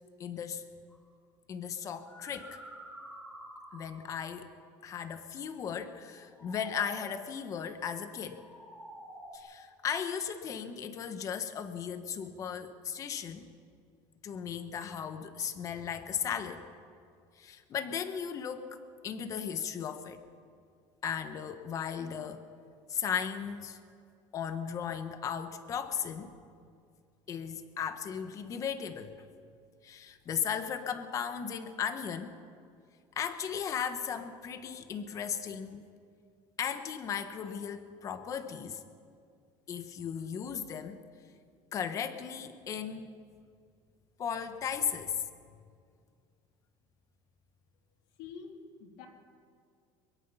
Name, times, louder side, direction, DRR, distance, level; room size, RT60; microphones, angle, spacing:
voice 1, 0.2-0.6 1.5-2.6 3.7-4.5 4.8-8.4 9.3-13.5 14.2-16.6 17.4-20.2 21.0-22.5 22.9-23.8 24.3-26.3 27.3-29.3 29.8-32.4 33.1-35.9 36.6-38.8 39.7-41.0 41.7-43.1 44.2-45.3, left 7 dB, 35° left, 9 dB, 1.3 m, -36 dB
sound 1, 0.9-1.1 1.9-4.2 6.1-7.3 8.2-9.4, right 1 dB, 10° left, 5.2 m, -49 dB
voice 2, 48.2-49.1, left 6 dB, 80° left, 3 dB, 3.0 m, -46 dB
22.5 x 22.5 x 5.7 m, 2.3 s
cardioid pair, 155°, 10 cm